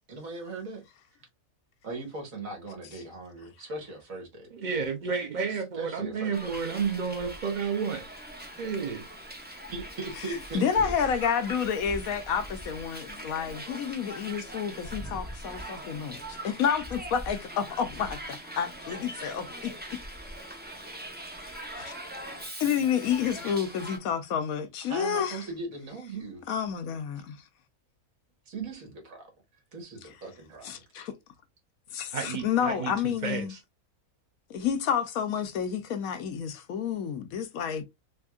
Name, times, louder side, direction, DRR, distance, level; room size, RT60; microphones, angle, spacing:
voice 1, 0.1-0.8 1.8-4.5 5.5-6.5 9.7-10.9 24.9-26.4 28.5-29.2 29.7-30.8, right 3 dB, 65° right, 1.8 m, -39 dB
voice 2, 4.5-8.1 8.4-9.0 32.1-33.6, right 6 dB, 80° right, 0.4 m, -31 dB
Hiss, 6.3-24.0, right 1 dB, 10° right, 0.5 m, -41 dB
voice 3, 10.2-19.7 21.8-21.9 22.6-25.4 26.5-27.4 30.6-31.1 31.9-33.5 34.5-37.8, left 7 dB, 70° left, 1.1 m, -30 dB
3.5 x 3.4 x 2.3 m
omnidirectional pair, 1.6 m